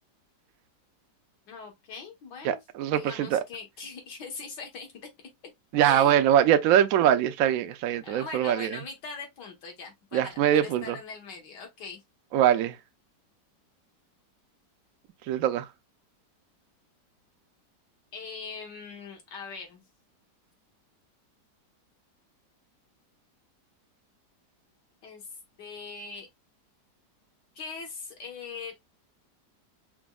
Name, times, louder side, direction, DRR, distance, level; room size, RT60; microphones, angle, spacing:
voice 1, 1.5-2.6 2.9-4.9 5.8-6.2 8.0-12.0 18.1-19.8 25.0-25.3 25.6-26.3 27.6-28.7, left 5 dB, 75° left, 1.7 m, -41 dB
voice 2, 2.4-3.4 5.7-8.8 10.1-11.0 12.3-12.8 15.3-15.7, right 10 dB, 75° right, 0.8 m, -23 dB
6.0 x 2.0 x 2.2 m
omnidirectional pair, 1.9 m